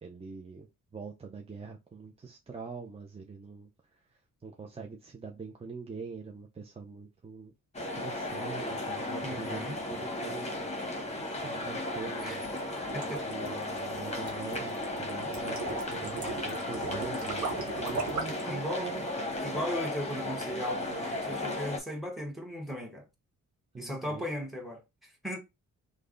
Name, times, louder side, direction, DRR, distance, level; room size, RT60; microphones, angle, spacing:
voice 1, 0.0-3.7 4.4-7.5 7.8-12.5 13.3-17.4 17.7-19.0 23.7-24.2, right 5 dB, 20° right, 0.5 m, -43 dB
sound 1, 7.7-21.8, left 1 dB, 20° left, 1.0 m, -35 dB
voice 2, 9.2-9.8 12.2-12.4 12.9-13.3 15.2-15.3 18.3-18.9 19.4-23.1 23.8-25.4, equal, ahead, 1.2 m, -37 dB
sound 2, 12.4-18.5, right 4 dB, 60° right, 1.3 m, -37 dB
3.3 x 2.2 x 3.7 m
cardioid pair, 100°, 33 cm